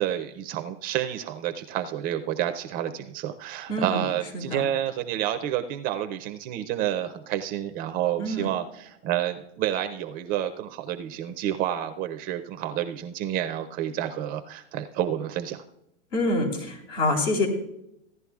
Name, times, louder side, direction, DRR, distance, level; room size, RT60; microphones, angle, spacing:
voice 1, 0.0-15.6, right 11 dB, 25° right, 8 dB, 0.4 m, -29 dB
voice 2, 3.7-4.0 4.3-4.6 8.2-8.5 16.1-17.5, left 1 dB, 80° left, 0 dB, 3.7 m, -26 dB
16.0 x 10.5 x 2.3 m, 0.80 s
hypercardioid pair, 135°, 37 cm